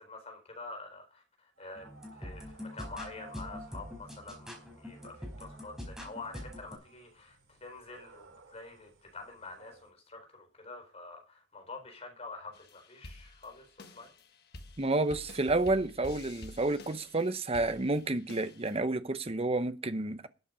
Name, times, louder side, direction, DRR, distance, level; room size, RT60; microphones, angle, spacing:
voice 1, 0.0-13.7 13.9-14.1, left 3 dB, 35° left, 4.3 m, -47 dB
sound 1, 1.6-9.9, right 2 dB, 75° right, 3.1 m, -56 dB
sound 2, 1.8-6.7, left 1 dB, 5° right, 4.6 m, -44 dB
sound 3, 12.5-18.8, left 2 dB, 60° left, 1.5 m, -50 dB
voice 2, 14.8-20.3, right 2 dB, 30° right, 0.9 m, -30 dB
12.5 x 8.5 x 5.1 m
head